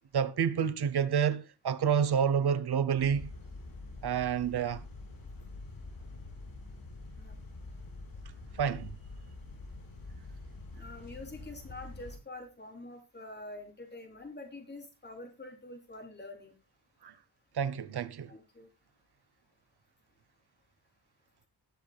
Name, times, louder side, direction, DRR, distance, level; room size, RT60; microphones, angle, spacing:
voice 1, 0.1-3.3 4.0-4.8 8.6-8.9 17.0-17.1 17.5-18.3, right 7 dB, 75° right, 0.9 m, -29 dB
sound 1, 3.0-12.2, left 2 dB, 60° left, 5.3 m, -46 dB
voice 2, 10.7-16.5 18.3-18.7, left 2 dB, 25° left, 3.5 m, -46 dB
20.0 x 6.7 x 2.3 m
wide cardioid pair, 140°, 39 cm